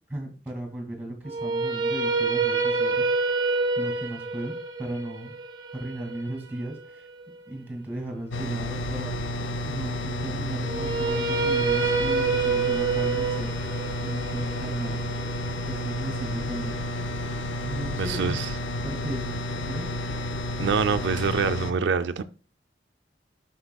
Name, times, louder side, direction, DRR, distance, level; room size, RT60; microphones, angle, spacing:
voice 1, 0.1-3.1 3.8-5.3 5.7-7.1 7.5-9.2 9.6-13.5 14.0-15.0 15.7-16.8 17.6-18.4 18.8-19.3 19.7-19.9, right 1 dB, 10° right, 2.2 m, -35 dB
sound 1, 1.3-7.4 10.6-16.7, right 4 dB, 25° right, 0.8 m, -27 dB
sound 2, 8.3-21.7, left 1 dB, 90° left, 0.6 m, -31 dB
voice 2, 18.0-18.5 20.6-22.2, right 5 dB, 80° right, 0.4 m, -25 dB
7.9 x 6.3 x 2.3 m
head